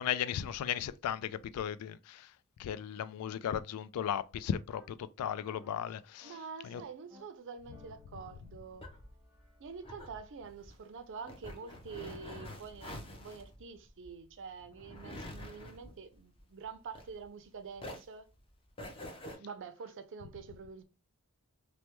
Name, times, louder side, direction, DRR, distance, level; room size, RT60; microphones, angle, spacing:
voice 1, 0.0-2.3 2.6-6.3 6.6-6.8, left 9 dB, 90° left, 0.3 m, -36 dB
sound 1, 3.9-4.1 4.7-4.9 5.4-5.7 6.2-6.4 6.7-7.2 7.7-9.9 11.2-11.7, left 1 dB, ahead, 0.8 m, -60 dB
voice 2, 6.2-8.9 9.6-18.3 19.3-20.8, right 5 dB, 60° right, 0.4 m, -47 dB
sound 2, 8.4-17.4 17.7-19.4, left 1 dB, 25° left, 0.6 m, -47 dB
3.2 x 2.1 x 2.9 m
head